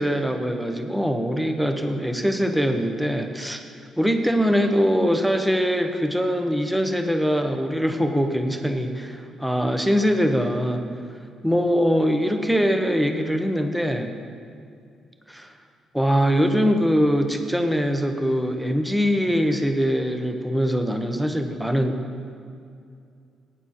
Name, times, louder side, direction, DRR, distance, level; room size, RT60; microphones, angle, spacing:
voice 1, 0.0-3.6 4.0-10.9 11.4-14.1 15.3-15.5 15.9-22.0, equal, 5° right, 5 dB, 1.1 m, -22 dB
16.5 x 9.6 x 4.4 m, 2.4 s
cardioid pair, 90°, 0 cm